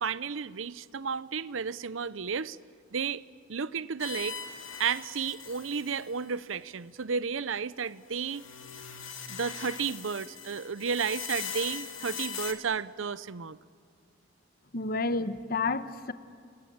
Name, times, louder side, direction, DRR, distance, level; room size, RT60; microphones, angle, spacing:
voice 1, 0.0-2.6 2.9-3.2 3.5-4.4 4.8-8.5 9.3-13.6, right 6 dB, 85° right, 18 dB, 0.7 m, -32 dB
sound 1, 4.0-6.2 8.2-12.5, left 7 dB, 90° left, 2.4 m, -40 dB
voice 2, 14.7-16.1, left 3 dB, 50° left, 12 dB, 1.2 m, -30 dB
30.0 x 21.5 x 8.9 m, 2.3 s
head